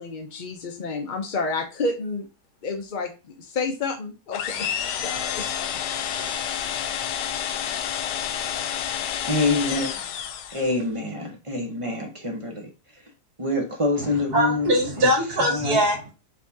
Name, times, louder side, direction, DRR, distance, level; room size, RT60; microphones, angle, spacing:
voice 1, 0.0-2.3 2.6-5.5, left 3 dB, 60° left, 4 dB, 0.5 m, -30 dB
sound 1, 4.3-10.8, left 9 dB, 80° left, 1.2 m, -29 dB
voice 2, 9.3-9.9 10.5-12.7 13.4-14.7 15.0-15.1 15.5-15.8, left 2 dB, 30° right, 1 dB, 0.6 m, -26 dB
voice 3, 14.0-16.1, equal, 65° right, 0 dB, 2.1 m, -22 dB
4.7 x 3.5 x 2.7 m, 0.30 s
omnidirectional pair, 1.8 m